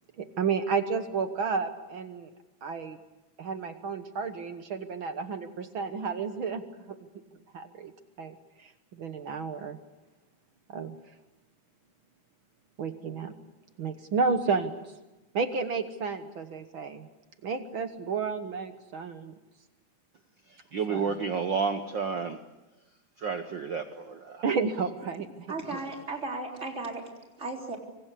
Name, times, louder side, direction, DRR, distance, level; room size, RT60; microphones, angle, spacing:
voice 1, 0.2-2.3 2.6-3.0 3.4-7.0 7.5-7.9 8.2-9.8 10.7-11.0 12.8-13.3 13.8-14.8 15.3-17.1 17.4-19.3 20.9-21.2 24.4-25.3, right 5 dB, 55° right, 9 dB, 1.5 m, -31 dB
voice 2, 20.7-22.4 23.2-24.4, right 5 dB, 75° right, 7 dB, 1.0 m, -30 dB
voice 3, 25.5-27.1 27.4-27.8, right 3 dB, 20° right, 1 dB, 3.9 m, -35 dB
26.0 x 24.5 x 8.5 m, 1.0 s
omnidirectional pair, 3.6 m